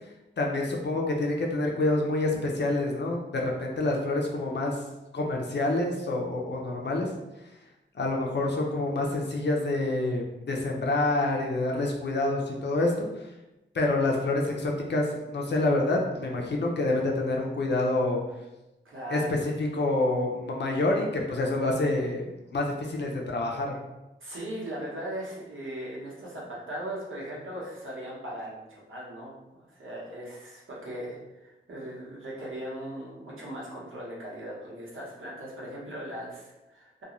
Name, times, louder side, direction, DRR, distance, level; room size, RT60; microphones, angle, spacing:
voice 1, 0.4-4.8 5.1-7.1 7.9-13.1 13.7-18.2 19.1-19.2 19.6-23.7, left 2 dB, 60° left, 0 dB, 0.5 m, -27 dB
voice 2, 18.8-19.4 24.2-37.0, right 1 dB, 85° right, -5 dB, 0.9 m, -39 dB
2.4 x 2.2 x 2.9 m, 0.99 s
wide cardioid pair, 95°, 20 cm